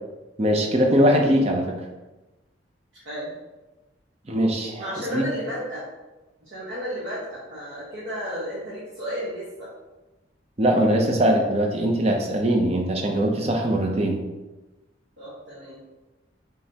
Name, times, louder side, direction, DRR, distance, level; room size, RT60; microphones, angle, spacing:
voice 1, 0.4-1.8 4.3-4.9 5.1-5.2 10.6-14.2, equal, 35° right, 2 dB, 0.6 m, -21 dB
voice 2, 2.9-3.3 4.8-5.8 6.4-9.7 15.2-15.8, equal, 80° right, -9 dB, 1.3 m, -33 dB
5.3 x 3.3 x 2.8 m, 1.1 s
head